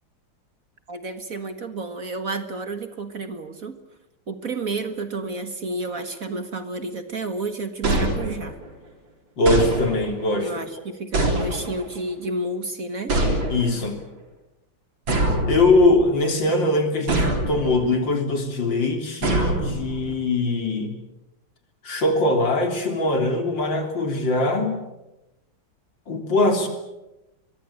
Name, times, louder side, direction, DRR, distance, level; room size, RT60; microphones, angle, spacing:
voice 1, 0.9-3.8 4.3-8.6 10.4-13.2, right 2 dB, 45° right, 9 dB, 1.9 m, -30 dB
sound 1, 7.8-8.7 9.5-10.3 11.1-12.0 13.1-13.9 15.1-16.1 17.1-17.9 19.2-20.1, right 1 dB, 65° right, 4.6 m, -24 dB
voice 2, 9.4-10.5 13.5-13.9 15.5-20.9 21.8-24.8 26.1-26.7, left 2 dB, 60° left, 5 dB, 4.1 m, -21 dB
23.5 x 22.5 x 8.7 m, 0.97 s
omnidirectional pair, 2.3 m